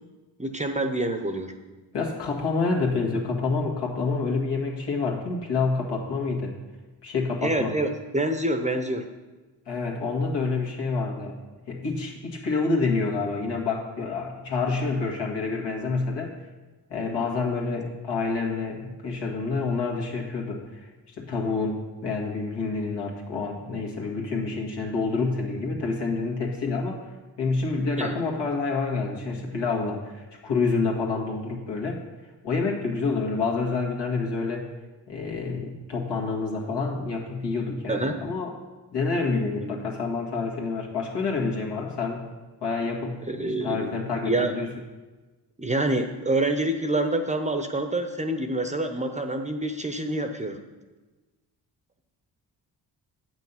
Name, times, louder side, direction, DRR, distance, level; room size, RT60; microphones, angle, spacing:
voice 1, 0.4-1.5 7.4-9.1 17.1-17.2 28.0-28.1 37.9-38.1 39.6-39.8 43.3-43.9 44.3-44.5 45.6-50.6, right 1 dB, 15° right, 6 dB, 0.7 m, -27 dB
voice 2, 1.9-6.5 7.0-7.7 9.7-11.4 11.7-16.3 16.9-27.0 27.4-32.0 32.4-34.7 35.1-38.5 38.9-42.3 42.6-44.7, left 4 dB, 75° left, -1 dB, 2.0 m, -28 dB
8.4 x 6.0 x 5.7 m, 1.2 s
cardioid pair, 85°, 42 cm